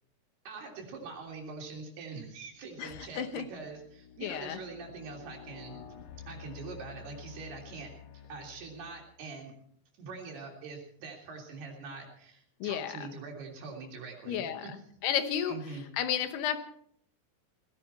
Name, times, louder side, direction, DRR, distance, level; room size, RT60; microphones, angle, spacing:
voice 1, 0.4-5.8 6.3-9.5 10.0-14.7 15.5-15.9, right 4 dB, 75° right, 0 dB, 5.3 m, -44 dB
sound 1, 1.7-1.8 2.4-9.3, left 8 dB, 65° left, 2.4 m, -51 dB
voice 2, 2.8-3.5 4.2-4.6 12.6-13.1 14.3-14.7 15.0-15.6 16.0-16.6, left 9 dB, 80° left, 9 dB, 3.2 m, -32 dB
18.5 x 16.5 x 4.3 m, 0.65 s
omnidirectional pair, 4.6 m